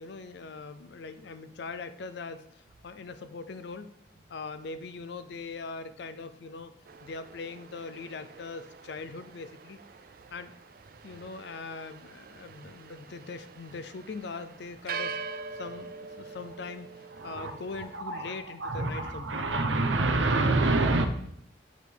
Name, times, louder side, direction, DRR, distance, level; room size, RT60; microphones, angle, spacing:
voice 1, 0.0-2.4 2.8-3.9 4.3-6.7 7.0-9.8 10.3-10.5 11.0-15.2 15.5-16.9 17.2-19.5, left 4 dB, 60° left, 11 dB, 0.4 m, -41 dB
sound 1, 6.9-18.0, right 5 dB, 45° right, 0.3 m, -44 dB
voice 2, 17.2-21.1, right 2 dB, 75° right, 7 dB, 0.7 m, -27 dB
8.2 x 3.5 x 4.5 m, 0.70 s
head